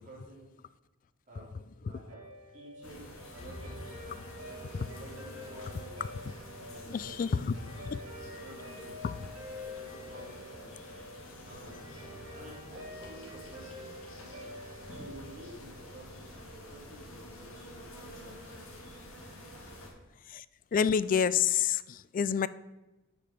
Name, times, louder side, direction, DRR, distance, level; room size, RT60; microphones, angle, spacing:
voice 1, 0.0-0.5 1.3-2.2 2.5-3.8 5.0-6.0 6.6-7.7 8.2-10.8 11.4-13.9 14.9-18.3 19.5-19.6, right 1 dB, 35° right, -7 dB, 2.8 m, -52 dB
Guitar, 2.1-16.7, left 1 dB, 80° right, 3.0 m, -48 dB
sound 1, 2.8-19.9, left 1 dB, 70° left, 2.0 m, -48 dB
voice 2, 6.9-7.5 7.8-8.0 9.0-9.2 20.3-20.4 20.7-22.5, left 7 dB, 40° left, 17 dB, 0.3 m, -28 dB
8.5 x 5.2 x 5.7 m, 1.0 s
head